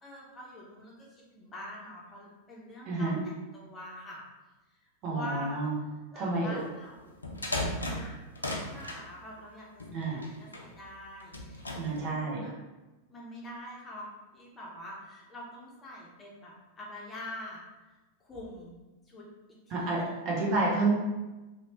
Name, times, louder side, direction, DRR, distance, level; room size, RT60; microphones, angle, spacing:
voice 1, 0.0-4.2 5.0-5.6 6.1-7.5 7.8-8.1 8.6-12.5 13.1-17.6 18.2-18.8 19.1-19.2 19.8-20.2, left 1 dB, 20° left, -4 dB, 0.6 m, -45 dB
voice 2, 2.8-3.2 5.0-5.8 6.1-6.5 9.9-10.2 11.8-12.4 19.7-20.9, right 3 dB, 40° right, -4 dB, 0.7 m, -29 dB
sound 1, 7.1-9.0 9.8-10.7 11.2-12.0, left 1 dB, 80° left, 0.4 m, -36 dB
2.7 x 2.0 x 2.8 m, 1.1 s
figure-of-eight pair, 90°, 0 cm